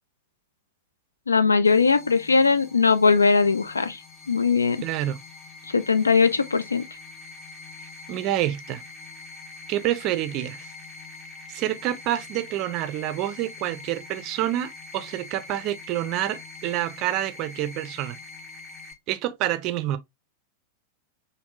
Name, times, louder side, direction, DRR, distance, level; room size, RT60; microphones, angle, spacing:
voice 1, 1.3-4.0 4.3-4.8 5.7-6.8, left 4 dB, 75° left, 0.3 m, -20 dB
sound 1, 1.6-18.9, left 3 dB, 20° left, 0.8 m, -44 dB
voice 2, 4.8-5.2 8.1-8.8 9.7-10.7 11.5-18.2 19.1-20.0, right 13 dB, 40° right, 0.4 m, -28 dB
3.4 x 2.6 x 2.5 m
figure-of-eight pair, 90°, 0 cm